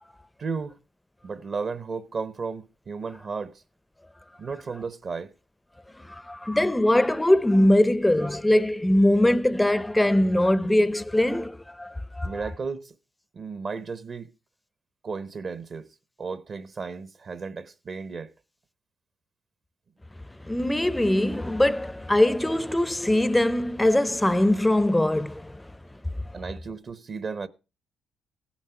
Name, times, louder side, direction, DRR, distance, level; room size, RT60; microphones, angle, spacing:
voice 1, 0.4-0.8 1.2-3.6 4.4-5.3 12.2-12.9 13.3-14.3 15.0-15.9 16.2-18.3 26.3-27.5, right 4 dB, 45° right, 0.8 m, -34 dB
voice 2, 6.1-12.4 20.4-25.6, left 1 dB, 10° left, 0.5 m, -22 dB
16.0 x 7.3 x 4.4 m
cardioid pair, 90°, 0 cm